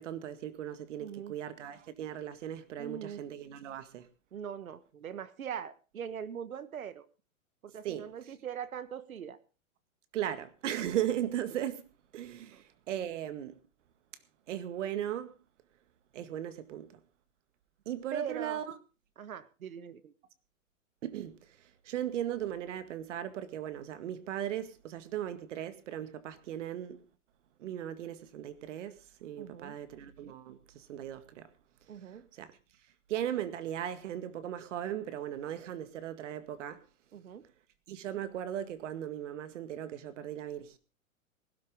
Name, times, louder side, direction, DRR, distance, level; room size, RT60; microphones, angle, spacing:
voice 1, 0.0-4.1 7.8-8.0 10.1-11.9 12.1-13.6 14.5-15.4 16.1-17.0 17.9-18.7 21.0-21.6 21.8-27.0 27.6-29.0 29.2-31.5 32.3-32.5 33.1-36.8 37.9-40.8, right 11 dB, 60° right, 1.9 m, -37 dB
voice 2, 1.0-1.4 2.8-3.2 4.3-7.1 7.6-9.4 12.5-12.6 18.1-18.6 19.2-20.1 29.4-29.8 31.9-32.3 37.1-37.5, right 8 dB, 80° right, 1.5 m, -41 dB
19.5 x 12.5 x 3.8 m
hypercardioid pair, 125°, 42 cm